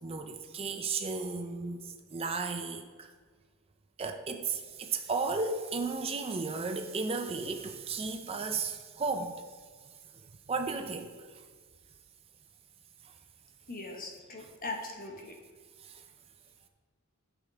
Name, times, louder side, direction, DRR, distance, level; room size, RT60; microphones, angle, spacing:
voice 1, 0.0-3.1 4.0-9.4 10.5-11.3 15.8-16.0, right 4 dB, 25° right, 6 dB, 0.4 m, -34 dB
voice 2, 13.7-15.4, left 2 dB, 40° left, 2 dB, 1.2 m, -40 dB
11.5 x 5.5 x 3.5 m, 1.5 s
head